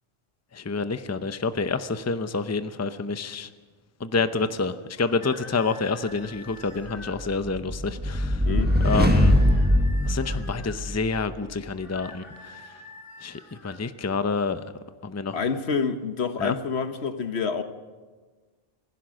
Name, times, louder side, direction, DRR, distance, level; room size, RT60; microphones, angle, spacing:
voice 1, 0.5-3.5 4.0-8.4 8.8-9.3 10.0-12.7 13.2-14.6 15.0-15.4 16.4-16.5, left 4 dB, 20° left, 11 dB, 0.6 m, -28 dB
sound 1, 5.0-7.2 8.6-10.8 11.7-13.8, left 2 dB, 60° left, 3.0 m, -46 dB
sound 2, 7.2-11.0, equal, 10° right, 1.3 m, -21 dB
voice 2, 8.4-8.8 15.3-17.6, left 5 dB, 80° left, 9 dB, 1.4 m, -27 dB
26.5 x 16.0 x 6.4 m, 1.4 s
omnidirectional pair, 1.1 m